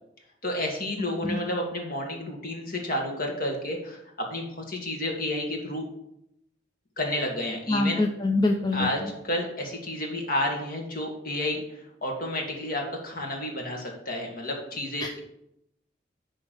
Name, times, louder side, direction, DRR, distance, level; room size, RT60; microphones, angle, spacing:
voice 1, 0.4-4.0 4.3-5.9 7.0-8.0 8.7-11.6 12.0-15.1, left 1 dB, 50° left, 1 dB, 1.9 m, -30 dB
voice 2, 7.7-8.9 15.0-15.2, left 2 dB, 20° left, 3 dB, 0.5 m, -25 dB
10.5 x 3.7 x 6.3 m, 0.80 s
head